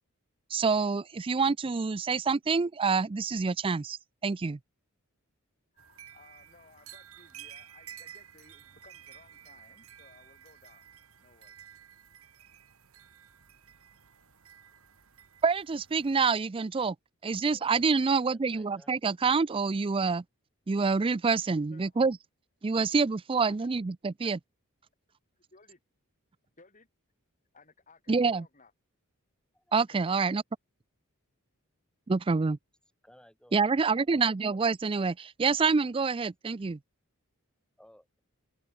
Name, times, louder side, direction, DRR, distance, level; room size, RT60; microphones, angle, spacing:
voice 1, 0.5-4.0 4.2-4.6 15.4-17.0 17.2-20.2 20.7-22.2 22.6-24.4 28.1-28.4 29.7-30.4 32.1-32.6 33.5-36.8, right 4 dB, 25° right, 0.4 m, -27 dB
voice 2, 5.7-10.9 11.2-11.6 21.7-22.0 23.5-23.7 24.2-24.4 25.5-25.8 26.6-26.9 27.5-28.7 29.8-30.3, left 3 dB, 35° left, 5.2 m, -59 dB
sound 1, 5.8-16.2, right 10 dB, 70° right, 2.0 m, -52 dB
voice 3, 18.2-18.9 29.5-29.8 33.0-33.7 37.8-38.2, equal, 5° left, 7.4 m, -58 dB
open air
head